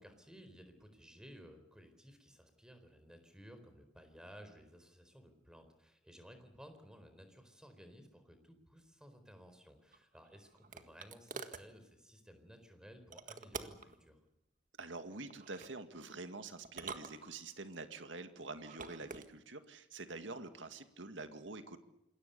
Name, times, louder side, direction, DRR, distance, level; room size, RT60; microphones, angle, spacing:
voice 1, 0.0-14.2, equal, 5° right, 7 dB, 4.2 m, -57 dB
sound 1, 9.9-11.7 13.1-13.9 15.3-15.7 16.6-17.7 18.5-19.3, right 4 dB, 45° right, 1.7 m, -48 dB
voice 2, 14.8-21.8, right 3 dB, 90° right, 8 dB, 2.1 m, -47 dB
27.5 x 21.5 x 7.0 m, 0.88 s
head